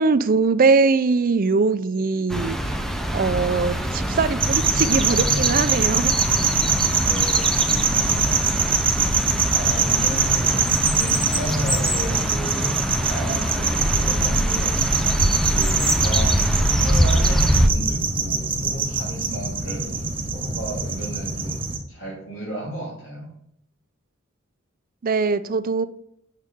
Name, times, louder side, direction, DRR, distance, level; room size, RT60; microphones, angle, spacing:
voice 1, 0.0-2.6 3.1-6.1 25.0-25.8, right 4 dB, 45° right, 0.5 m, -21 dB
sound 1, 2.3-17.7, equal, ahead, 0.7 m, -24 dB
sound 2, 4.4-21.8, right 5 dB, 25° right, 1.1 m, -23 dB
voice 2, 7.0-8.7 9.5-14.9 15.5-23.3, right 1 dB, 80° left, 3.5 m, -34 dB
8.3 x 6.6 x 3.7 m
head